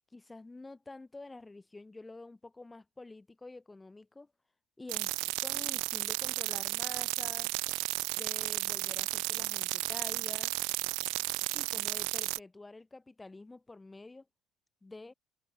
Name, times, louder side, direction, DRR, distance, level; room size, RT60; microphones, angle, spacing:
voice 1, 0.1-4.3 4.8-7.5 8.2-10.5 11.4-14.3 14.8-15.1, left 2 dB, 15° left, 5.8 m, -48 dB
sound 1, 4.9-12.4, right 30 dB, 85° right, 1.5 m, -33 dB
cardioid pair, 110°, 0 cm